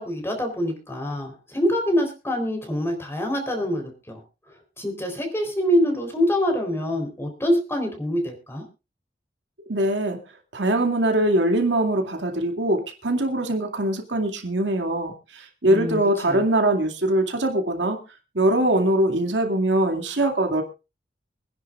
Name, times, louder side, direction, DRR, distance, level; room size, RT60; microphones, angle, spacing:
voice 1, 0.0-4.2 4.8-8.6 15.7-16.0 16.3-16.4, equal, 15° left, 3 dB, 3.8 m, -25 dB
voice 2, 9.7-10.2 10.5-18.0 18.3-20.6, right 1 dB, 75° right, 3 dB, 2.3 m, -22 dB
25.5 x 10.5 x 2.5 m, 0.29 s
head